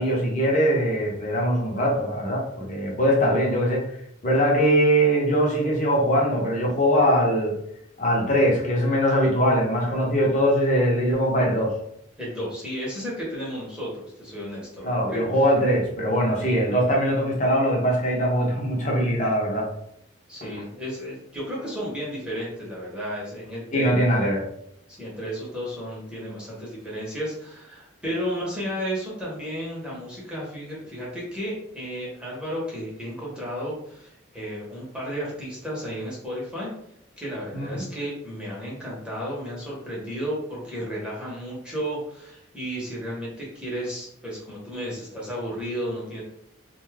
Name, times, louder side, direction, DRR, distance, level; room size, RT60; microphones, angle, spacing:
voice 1, 0.0-3.8 4.2-7.5 8.0-11.7 14.8-19.7 23.7-24.4 37.5-37.8, equal, 40° left, -2 dB, 0.7 m, -22 dB
voice 2, 12.2-15.2 20.3-23.9 24.9-36.7 37.2-46.2, equal, 5° right, -6 dB, 0.8 m, -33 dB
2.6 x 2.3 x 3.3 m, 0.74 s
head